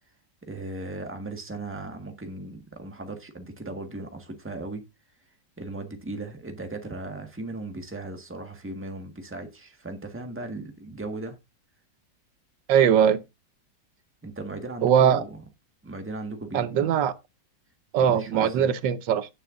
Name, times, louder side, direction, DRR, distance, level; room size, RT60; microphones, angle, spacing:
voice 1, 0.5-4.8 5.6-11.4 14.2-15.4 15.8-16.9 18.0-18.7, right 2 dB, 10° right, 1.4 m, -37 dB
voice 2, 12.7-13.2 14.8-15.2 16.5-17.1 17.9-19.3, right 8 dB, 85° right, 1.5 m, -20 dB
17.0 x 6.7 x 2.5 m
omnidirectional pair, 1.9 m